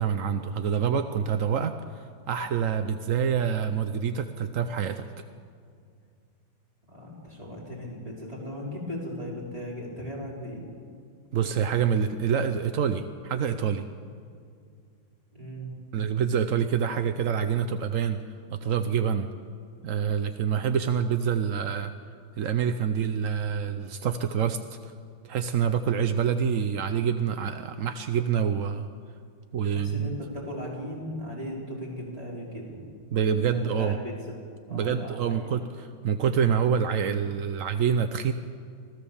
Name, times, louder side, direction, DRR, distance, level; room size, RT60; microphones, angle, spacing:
voice 1, 0.0-5.1 11.3-13.8 15.9-18.2 18.5-19.3 19.8-21.9 22.4-24.9 25.3-28.9 29.5-30.1 33.1-34.0 34.7-35.6 36.0-38.3, right 7 dB, 65° right, 9 dB, 0.8 m, -26 dB
voice 2, 6.9-10.6 15.3-15.8 29.7-32.9 33.5-34.4 34.7-35.5, equal, 15° right, -5 dB, 5.2 m, -37 dB
25.0 x 16.5 x 7.2 m, 2.2 s
omnidirectional pair, 2.2 m